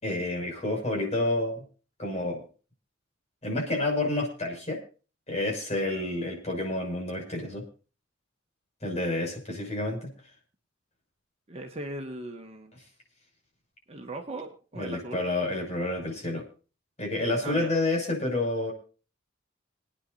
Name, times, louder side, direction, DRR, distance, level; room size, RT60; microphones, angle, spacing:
voice 1, 0.0-1.6 2.0-2.4 3.4-4.8 5.3-7.6 8.8-10.1 14.7-16.4 17.0-18.7, left 2 dB, 35° left, 0 dB, 6.4 m, -29 dB
voice 2, 11.5-12.7 13.9-15.2 17.4-17.7, right 2 dB, 35° right, 3 dB, 1.7 m, -38 dB
27.0 x 10.0 x 2.7 m, 0.36 s
head